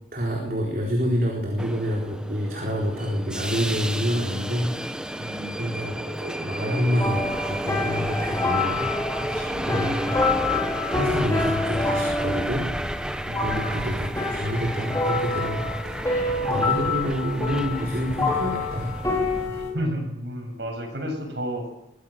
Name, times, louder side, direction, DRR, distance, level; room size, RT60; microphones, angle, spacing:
voice 1, 0.1-4.8 5.5-8.9 9.2-10.1 10.9-12.7 13.4-16.0 16.4-19.2, equal, 50° right, -1 dB, 4.1 m, -27 dB
Subway metro underground, 1.6-19.5, equal, 5° right, 1.0 m, -32 dB
voice 2, 5.2-5.6 9.2-9.7 13.3-13.6 16.5-17.0 19.5-21.7, equal, 65° right, 2 dB, 7.5 m, -32 dB
sound 1, 7.0-19.7, left 3 dB, 15° left, 3.7 m, -27 dB
23.0 x 15.5 x 7.6 m, 0.85 s
head